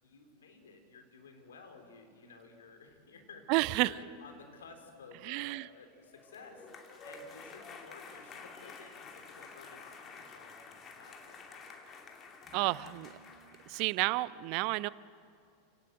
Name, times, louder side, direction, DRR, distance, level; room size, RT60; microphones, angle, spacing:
voice 1, 0.0-12.1, left 4 dB, 70° left, 4 dB, 3.6 m, -54 dB
voice 2, 3.5-3.9 5.3-5.6 12.5-13.1 13.7-14.9, right 21 dB, 50° right, 20 dB, 0.6 m, -30 dB
sound 1, 6.0-13.9, left 4 dB, 30° left, 2.7 m, -50 dB
29.0 x 17.5 x 7.9 m, 2.4 s
figure-of-eight pair, 90°, 0 cm